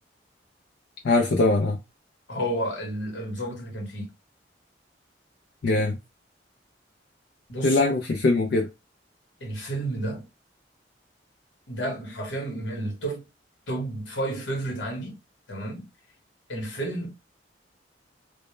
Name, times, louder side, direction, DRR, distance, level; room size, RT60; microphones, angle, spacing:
voice 1, 1.0-1.8 5.6-6.0 7.6-8.7, left 2 dB, 60° left, 0.4 m, -21 dB
voice 2, 2.3-4.1 7.5-7.8 9.4-10.2 11.7-13.2 13.7-15.1 15.5-15.9 16.5-17.1, right 1 dB, 80° left, 1.0 m, -31 dB
2.1 x 2.1 x 3.0 m
head